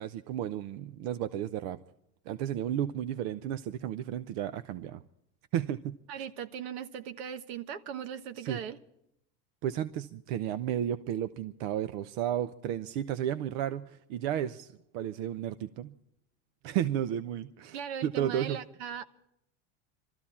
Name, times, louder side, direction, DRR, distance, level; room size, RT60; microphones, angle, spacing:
voice 1, 0.0-1.8 2.3-5.0 5.5-6.2 8.4-8.6 9.6-15.9 16.6-18.6, right 10 dB, 65° right, 0.7 m, -33 dB
voice 2, 6.1-8.8 17.7-19.0, right 8 dB, 80° right, 1.3 m, -39 dB
23.5 x 14.0 x 4.3 m
cardioid pair, 155°, 32 cm